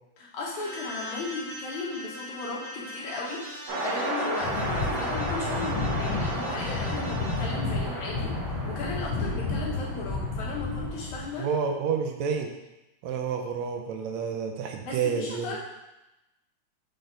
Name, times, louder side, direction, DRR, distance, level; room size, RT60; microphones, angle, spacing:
voice 1, 0.2-3.4 3.8-11.5 14.8-15.6, left 3 dB, 70° left, -4 dB, 2.7 m, -36 dB
sound 1, 0.6-7.5, equal, 45° right, 2.2 m, -41 dB
sound 2, 3.7-11.0, right 1 dB, 90° right, 3.6 m, -34 dB
sound 3, 4.4-11.3, left 3 dB, 85° left, 1.2 m, -31 dB
voice 2, 11.4-12.5 13.0-15.6, right 6 dB, 75° right, 4 dB, 1.8 m, -29 dB
7.7 x 4.3 x 3.8 m, 0.95 s
omnidirectional pair, 3.6 m